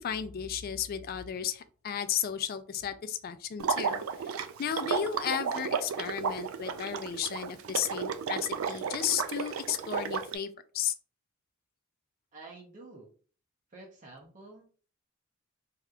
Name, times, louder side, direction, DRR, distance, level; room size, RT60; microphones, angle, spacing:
voice 1, 0.0-4.0 4.6-10.9, left 8 dB, 45° left, 11 dB, 0.3 m, -34 dB
Water / Liquid, 3.6-10.4, right 6 dB, 75° right, 0.4 m, -33 dB
voice 2, 12.3-13.1 13.7-14.9, right 2 dB, 40° right, -1 dB, 0.6 m, -50 dB
3.3 x 2.8 x 2.4 m, 0.41 s
head